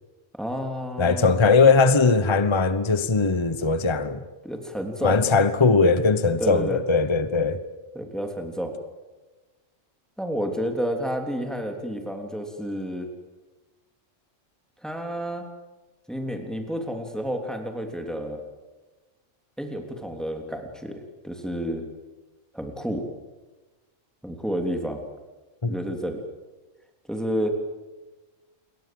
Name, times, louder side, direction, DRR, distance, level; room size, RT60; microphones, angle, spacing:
voice 1, 0.3-1.4 4.4-5.4 6.4-6.8 7.9-8.7 10.2-13.1 14.8-15.5 16.1-18.4 19.6-21.8 22.5-23.0 24.2-25.0 25.7-26.2 27.1-27.5, equal, ahead, 3.3 m, -30 dB
voice 2, 1.0-4.2 5.0-7.6 25.6-25.7, left 4 dB, 25° left, 1.1 m, -20 dB
29.0 x 22.5 x 7.9 m
omnidirectional pair, 1.3 m